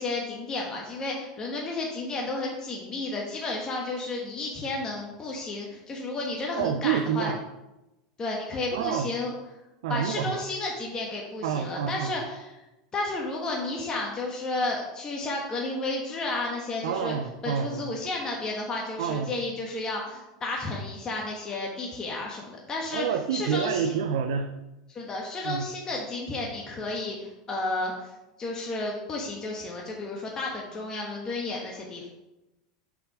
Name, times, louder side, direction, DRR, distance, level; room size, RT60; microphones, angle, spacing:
voice 1, 0.0-7.3 8.2-9.3 9.9-12.5 12.9-17.1 17.4-23.1 23.3-23.9 24.9-28.1 28.4-32.1, left 2 dB, 25° left, -1 dB, 1.3 m, -32 dB
voice 2, 6.6-7.4 8.7-9.1 9.8-10.4 11.4-12.2 16.8-17.9 19.0-19.3 22.9-24.5 25.4-25.7, right 7 dB, 80° right, 6 dB, 0.5 m, -28 dB
6.1 x 4.9 x 5.0 m, 0.99 s
supercardioid pair, 110°, 3 cm